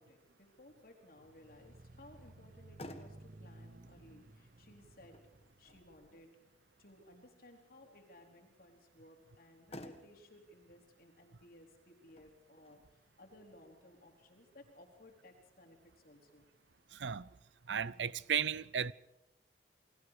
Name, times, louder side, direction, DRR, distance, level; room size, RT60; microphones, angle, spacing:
voice 1, 0.0-5.2 5.6-6.3 6.8-16.5, left 1 dB, 55° left, 4.3 m, -59 dB
sound 1, 1.2-6.1, right 2 dB, 50° right, 0.8 m, -57 dB
Motor vehicle (road), 2.7-15.3, left 1 dB, 35° left, 1.8 m, -58 dB
voice 2, 16.9-17.3 17.7-18.9, right 8 dB, 85° right, 0.6 m, -35 dB
29.0 x 20.5 x 5.0 m
head